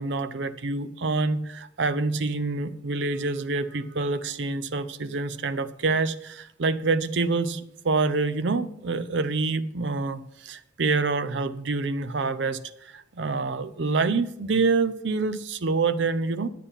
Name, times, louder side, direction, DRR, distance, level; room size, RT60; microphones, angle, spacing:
voice 1, 0.0-12.6 12.9-16.5, right 3 dB, 70° right, 13 dB, 0.6 m, -26 dB
9.9 x 8.4 x 5.7 m, 0.75 s
head